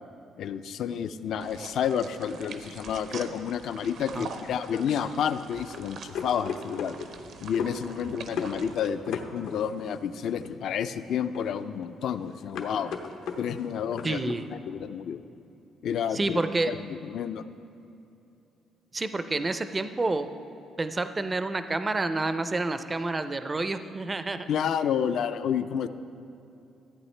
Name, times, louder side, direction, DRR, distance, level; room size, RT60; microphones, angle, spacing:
voice 1, 0.4-7.0 7.4-12.9 13.4-14.2 14.7-15.2 15.8-17.4 24.5-25.9, left 8 dB, 65° left, 11 dB, 0.4 m, -30 dB
sound 1, 1.4-8.9, right 5 dB, 65° right, 0.6 m, -44 dB
sound 2, 4.3-14.4, left 6 dB, 90° left, 0.8 m, -38 dB
voice 2, 14.0-14.4 16.1-16.7 18.9-20.3 20.8-24.5, right 2 dB, 20° right, 10 dB, 0.4 m, -29 dB
14.0 x 8.5 x 3.2 m, 2.8 s
cardioid pair, 130°, 0 cm